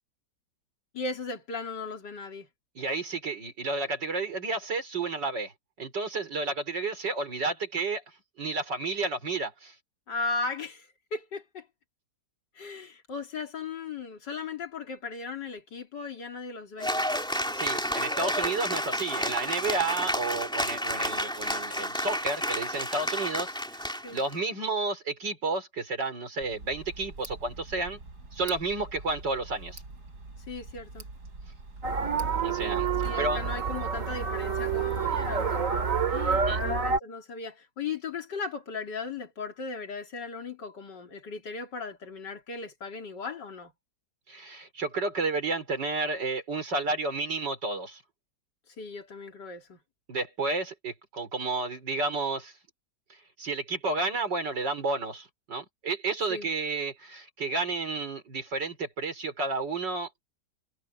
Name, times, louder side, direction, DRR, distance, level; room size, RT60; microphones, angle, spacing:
voice 1, 0.9-2.5 10.1-11.7 12.6-16.9 24.0-24.2 30.5-31.1 33.0-43.7 48.8-49.8 56.3-56.5, left 4 dB, 80° left, 3.4 m, -37 dB
voice 2, 2.7-5.5 5.8-8.0 8.4-9.7 17.5-23.8 24.1-28.0 28.3-29.8 32.4-32.9 33.2-33.4 36.4-36.6 44.3-48.0 50.1-52.5 53.4-60.1, right 3 dB, 85° right, 5.1 m, -31 dB
Cheering / Applause, 16.8-24.3, equal, ahead, 3.0 m, -31 dB
Tick, 26.4-32.4, right 3 dB, 65° right, 5.4 m, -45 dB
sound 1, 31.8-37.0, right 5 dB, 50° right, 2.4 m, -28 dB
omnidirectional pair, 1.9 m